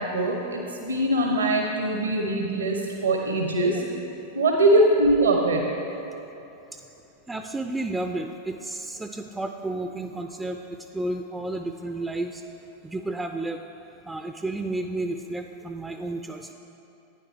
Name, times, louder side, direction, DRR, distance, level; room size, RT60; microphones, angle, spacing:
voice 1, 0.0-3.8 4.3-5.6, right 1 dB, 70° right, 1 dB, 0.9 m, -22 dB
voice 2, 7.3-10.6 10.9-12.4 12.8-13.6 14.1-16.5, right 2 dB, 10° right, 6 dB, 0.3 m, -31 dB
11.5 x 9.5 x 3.5 m, 2.9 s
figure-of-eight pair, 90°, 0 cm